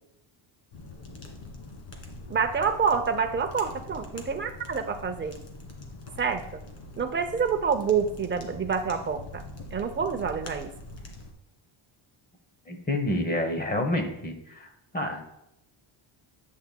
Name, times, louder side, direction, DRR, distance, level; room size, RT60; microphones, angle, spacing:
sound 1, 0.7-11.3, left 2 dB, 60° left, 1.8 m, -43 dB
voice 1, 2.3-5.4 6.2-6.4 7.0-9.4 9.7-10.7, right 6 dB, 25° right, 6 dB, 0.6 m, -27 dB
voice 2, 12.7-15.3, left 1 dB, 20° left, 5 dB, 1.0 m, -29 dB
11.0 x 8.4 x 2.3 m, 0.81 s
cardioid pair, 155°, 50 cm